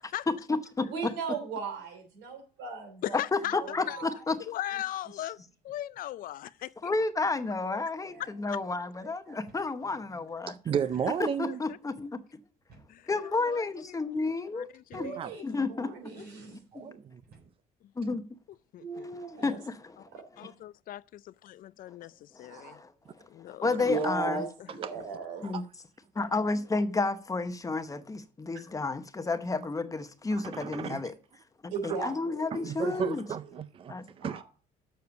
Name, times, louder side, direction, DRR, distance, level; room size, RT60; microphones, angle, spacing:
voice 1, 0.3-1.1 3.3-4.4 6.8-10.5 11.2-12.2 13.1-14.7 14.9-15.1 15.4-15.9 18.0-18.2 19.4-20.1 22.3-22.9 23.5-24.4 25.4-25.6 26.1-31.1 31.6-33.2 33.9-34.0, left 3 dB, 20° left, 0.8 m, -31 dB
voice 2, 0.9-3.2 3.6-4.2 8.1-8.3 9.0-9.4 10.1-10.3 15.0-16.9 18.8-19.6 20.1-20.2 22.5-22.7 23.8-25.5 31.7-33.1 34.2-34.4, right 4 dB, 90° right, 3.0 m, -37 dB
voice 3, 3.0-4.0 4.4-5.4 5.6-6.9 8.2-8.6 11.5-11.6 12.9-14.0 14.5-15.5 16.2-16.3 18.7-19.1 20.4-22.8 23.3-23.8 24.2-24.4, left 13 dB, 55° left, 0.4 m, -39 dB
sound 1, 9.5-9.8 10.1-10.2 10.9-11.2 12.7-13.0 13.7-13.9 14.9-15.2 16.0-16.2 17.2-17.6, right 4 dB, 70° right, 4.1 m, -55 dB
voice 4, 10.5-11.6 15.2-15.3 16.7-17.2 23.8-23.9 25.4-25.6 30.3-31.1 32.5-34.4, right 7 dB, 35° right, 0.4 m, -33 dB
6.9 x 6.6 x 6.8 m
cardioid pair, 110°, 17 cm